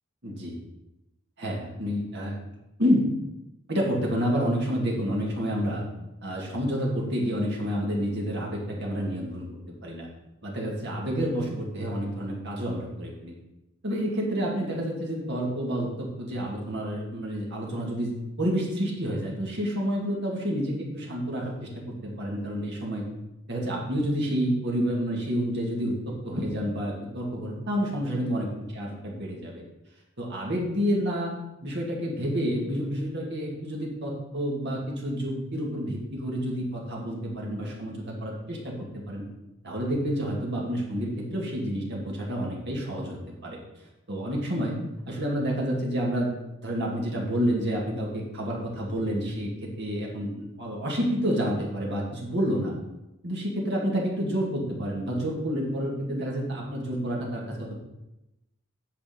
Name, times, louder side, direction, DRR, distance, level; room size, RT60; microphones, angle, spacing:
voice 1, 0.2-0.5 1.4-2.3 2.8-3.0 3.7-5.8 6.2-9.5 9.8-10.1 10.4-13.3 13.8-18.1 18.4-23.0 23.5-28.5 28.7-29.6 30.2-31.3 31.6-38.7 39.1-39.2 39.6-43.6 44.1-44.7 45.1-46.3 46.6-52.7 53.2-57.7, equal, 55° right, -2 dB, 2.3 m, -29 dB
8.5 x 5.7 x 5.4 m, 0.95 s
head